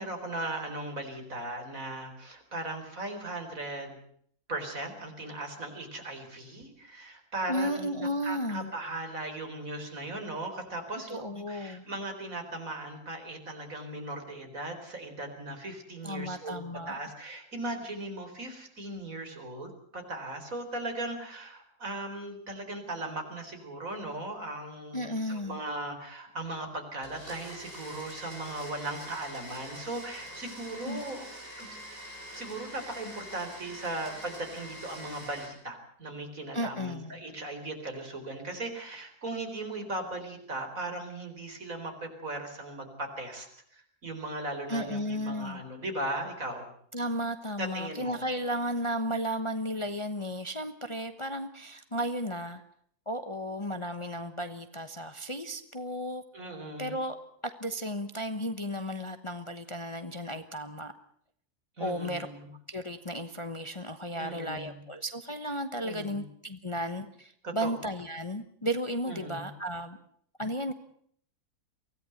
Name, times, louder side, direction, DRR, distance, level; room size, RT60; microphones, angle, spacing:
voice 1, 0.0-4.0 4.5-31.3 31.6-31.7 32.3-43.5 43.7-46.7 47.6-48.2 56.3-57.0 61.8-62.5 64.2-64.8 65.8-66.2 67.4-67.8 69.1-69.5, right 2 dB, 60° right, 5 dB, 4.7 m, -38 dB
voice 2, 7.5-8.7 11.1-11.8 16.0-17.0 24.9-25.6 30.9-31.1 36.5-37.2 44.7-45.6 46.9-52.6 53.1-56.2 56.8-57.2 57.6-60.9 61.8-62.3 62.7-70.0 70.4-70.7, equal, 20° left, 9 dB, 1.1 m, -34 dB
Domestic sounds home sounds, 27.0-35.5, equal, 35° right, 8.1 m, -45 dB
24.0 x 17.0 x 8.0 m, 0.64 s
omnidirectional pair, 1.6 m